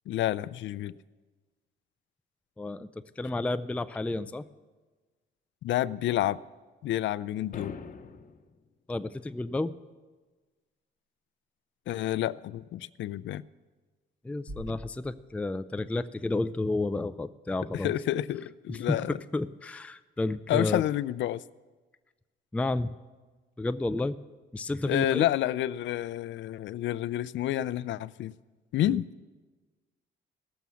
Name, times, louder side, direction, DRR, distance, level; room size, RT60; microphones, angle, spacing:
voice 1, 0.1-0.9 5.6-6.4 6.8-7.7 11.9-13.4 17.7-19.2 20.5-21.4 24.9-28.3 28.7-29.0, left 13 dB, 70° left, 19 dB, 0.4 m, -29 dB
voice 2, 2.6-2.9 3.2-4.4 8.9-9.7 14.2-17.9 18.7-20.8 22.5-22.9 23.6-24.2 24.5-25.3 28.8-29.0, left 2 dB, 5° left, 12 dB, 0.4 m, -31 dB
sound 1, 7.5-8.5, left 5 dB, 45° left, 0.8 m, -42 dB
sound 2, 14.5-16.3, equal, 60° right, 5.0 m, -47 dB
17.5 x 7.0 x 6.2 m, 1.3 s
cardioid pair, 90°, 20 cm